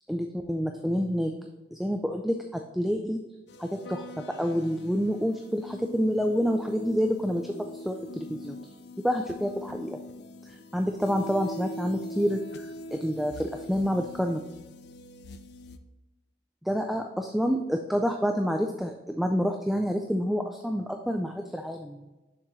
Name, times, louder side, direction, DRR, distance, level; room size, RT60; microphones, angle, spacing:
voice 1, 0.1-1.4 1.7-3.2 3.6-8.6 9.0-10.0 10.4-14.4 16.6-22.0, equal, ahead, 4 dB, 0.3 m, -28 dB
sound 1, 3.5-15.8, left 1 dB, 65° left, 0.5 m, -43 dB
6.7 x 5.9 x 3.1 m, 1.1 s
head